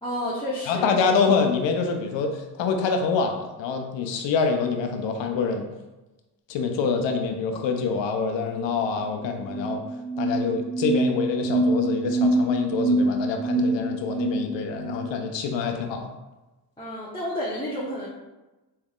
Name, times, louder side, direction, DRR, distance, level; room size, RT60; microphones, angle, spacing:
voice 1, 0.0-0.9 16.8-18.1, equal, 10° left, -9 dB, 0.9 m, -30 dB
voice 2, 0.7-5.7 6.5-9.8 10.2-16.1, left 5 dB, 75° left, 4 dB, 0.7 m, -26 dB
sound 1, 9.0-9.1 9.3-15.1, right 2 dB, 30° right, 1.2 m, -25 dB
3.4 x 3.2 x 2.4 m, 1.1 s
supercardioid pair, 60°, 44 cm